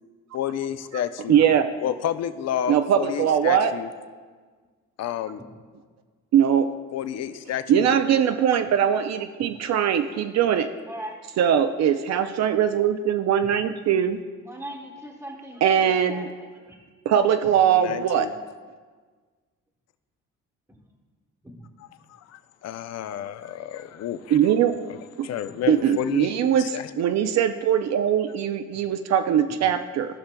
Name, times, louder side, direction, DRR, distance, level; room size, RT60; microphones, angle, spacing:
voice 1, 0.3-1.4 1.8-3.9 5.0-5.4 6.9-7.9 17.7-18.3 22.1-24.4 24.9-26.9, left 10 dB, 60° left, 11 dB, 0.5 m, -30 dB
voice 2, 1.3-1.7 2.7-3.7 6.3-6.7 7.7-10.7 11.4-14.2 15.6-16.3 17.1-18.3 24.3-24.7 25.2-25.3 25.7-26.6 27.0-30.1, right 9 dB, 60° right, 8 dB, 0.4 m, -21 dB
voice 3, 10.9-11.2 13.4-13.5 14.4-16.8 17.4-17.5 20.7-20.8 21.4-21.7 25.5-25.6, equal, 10° right, -4 dB, 1.0 m, -40 dB
14.5 x 5.7 x 2.2 m, 1.5 s
cardioid pair, 90°, 30 cm